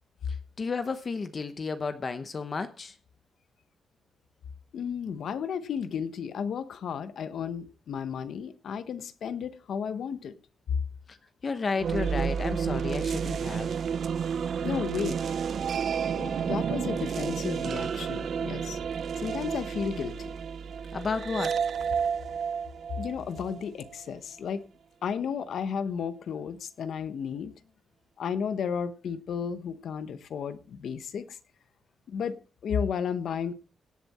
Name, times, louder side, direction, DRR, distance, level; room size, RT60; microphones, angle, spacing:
voice 1, 0.6-2.9 11.1-11.2 11.4-13.7 20.9-21.6, left 4 dB, 30° left, 0.9 m, -32 dB
voice 2, 4.7-10.3 14.6-15.2 16.1-18.8 19.2-20.3 23.0-24.7 25.0-27.5 28.2-31.4 32.1-32.4 32.6-33.5, left 7 dB, 60° left, 0.9 m, -33 dB
sound 1, 11.8-23.9, right 7 dB, 50° right, 0.4 m, -31 dB
17.0 x 7.3 x 4.2 m
wide cardioid pair, 165°, 0 cm